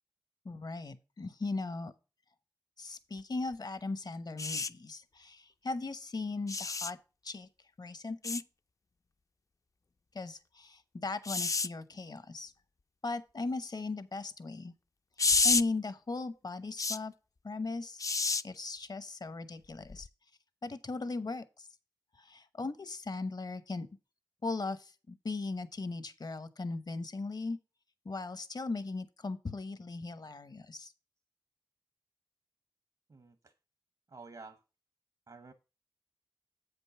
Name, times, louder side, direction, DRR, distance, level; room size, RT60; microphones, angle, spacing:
voice 1, 0.4-1.9 2.8-7.0 7.2-7.5 7.8-8.4 10.1-12.5 13.0-14.7 15.4-17.1 17.4-18.0 18.4-20.1 20.6-21.7 22.2-23.9 24.4-27.6 28.0-30.9, left 3 dB, 60° left, 1.0 m, -38 dB
sound 1, 4.4-4.7 6.5-6.9 8.2-8.4 11.2-11.7 15.2-15.6 16.8-17.0 18.0-18.4 19.9-20.1, left 4 dB, 45° left, 0.4 m, -29 dB
voice 2, 33.1-33.5 34.1-34.6 35.3-35.5, right 4 dB, 60° right, 0.9 m, -50 dB
7.9 x 5.3 x 5.6 m
wide cardioid pair, 60°, 8 cm